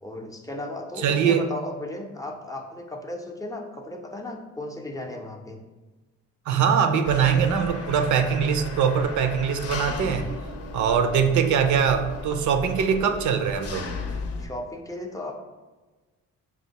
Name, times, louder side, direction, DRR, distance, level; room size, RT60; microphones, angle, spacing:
voice 1, 0.0-5.6 14.4-15.4, left 1 dB, 10° left, 1 dB, 0.5 m, -35 dB
voice 2, 1.0-1.5 6.5-10.3 10.7-13.9, right 7 dB, 75° right, 8 dB, 0.5 m, -22 dB
Engine, 7.1-14.5, left 3 dB, 55° left, 0.6 m, -35 dB
5.4 x 2.5 x 2.8 m, 1.2 s
cardioid pair, 90°, 30 cm